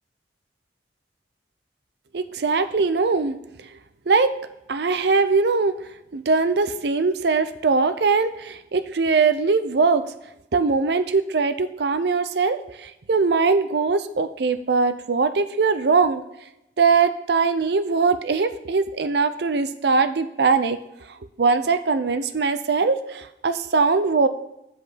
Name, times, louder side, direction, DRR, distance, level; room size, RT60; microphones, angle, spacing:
voice 1, 2.1-3.4 4.1-4.3 4.7-5.7 6.1-10.0 10.5-16.2 16.8-20.8 21.4-24.3, right 4 dB, 60° right, 11 dB, 0.5 m, -21 dB
8.0 x 4.9 x 5.6 m, 0.85 s
head